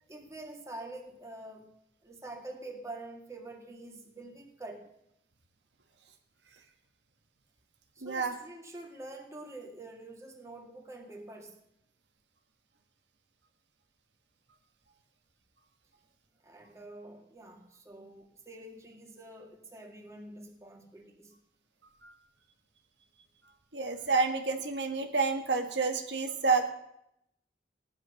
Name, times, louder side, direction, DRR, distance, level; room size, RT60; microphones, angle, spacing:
voice 1, 0.1-1.7 2.0-4.9 8.0-11.6 16.4-21.3, right 2 dB, 15° right, 1 dB, 2.2 m, -46 dB
voice 2, 8.0-8.3 22.0-22.1 23.7-26.7, right 4 dB, 85° right, 4 dB, 1.8 m, -29 dB
17.0 x 11.0 x 6.6 m, 0.81 s
head